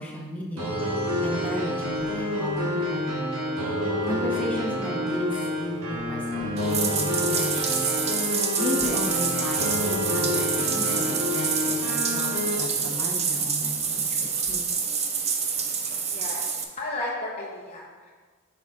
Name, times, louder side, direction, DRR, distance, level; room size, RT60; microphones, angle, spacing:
voice 1, 0.0-3.3 4.0-7.9 8.6-14.6, left 1 dB, 5° left, -4 dB, 1.0 m, -34 dB
sound 1, 0.6-12.5, left 1 dB, 75° right, 1.3 m, -28 dB
Bathtub (filling or washing), 6.6-16.6, right 6 dB, 30° right, 0.5 m, -27 dB
voice 2, 16.1-18.1, left 2 dB, 30° left, -6 dB, 0.8 m, -34 dB
8.2 x 5.8 x 2.5 m, 1.5 s
head